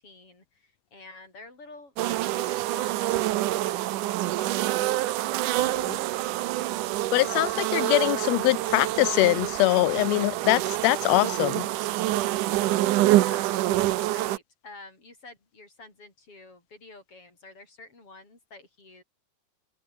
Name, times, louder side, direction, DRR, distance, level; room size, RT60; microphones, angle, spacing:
voice 1, 0.0-4.7 13.0-19.0, left 3 dB, 45° left, 8.5 m, -49 dB
sound 1, 2.0-14.4, right 16 dB, 80° right, 2.4 m, -26 dB
voice 2, 5.6-6.0 7.1-11.7, left 21 dB, 85° left, 1.5 m, -23 dB
open air
omnidirectional pair, 3.6 m